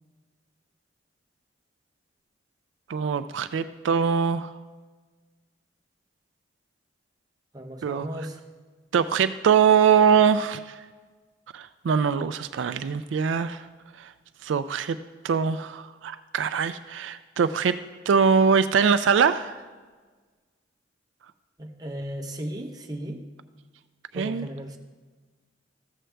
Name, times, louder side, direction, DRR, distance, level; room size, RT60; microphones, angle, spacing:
voice 1, 2.9-4.6 7.8-8.3 8.9-10.8 11.5-13.7 14.0-14.1 14.4-15.0 15.2-17.8 18.1-19.6 24.1-24.5, right 6 dB, 75° right, 12 dB, 0.3 m, -23 dB
voice 2, 7.5-8.4 21.6-23.2 24.1-24.8, right 1 dB, 20° right, 2 dB, 0.8 m, -35 dB
13.5 x 7.7 x 3.4 m, 1.4 s
head